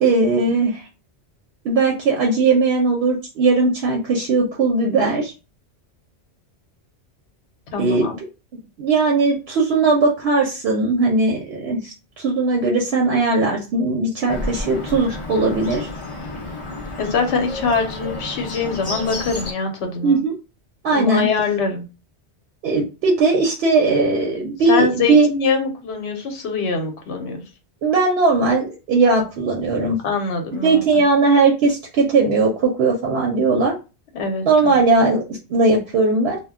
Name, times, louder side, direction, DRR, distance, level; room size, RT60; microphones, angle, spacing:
voice 1, 0.0-0.8 1.6-5.3 7.8-8.1 8.8-15.9 20.0-20.3 20.8-21.3 22.6-25.3 27.8-30.0 30.5-33.7 34.4-36.4, right 3 dB, 70° right, 0 dB, 0.8 m, -18 dB
voice 2, 7.7-8.1 17.0-20.2 20.9-21.8 24.6-27.4 30.0-31.0 34.1-34.8, left 4 dB, 75° left, 4 dB, 1.0 m, -23 dB
Bird, 14.3-19.5, left 2 dB, 40° left, 0.5 m, -31 dB
2.1 x 2.1 x 3.5 m, 0.31 s
omnidirectional pair, 1.1 m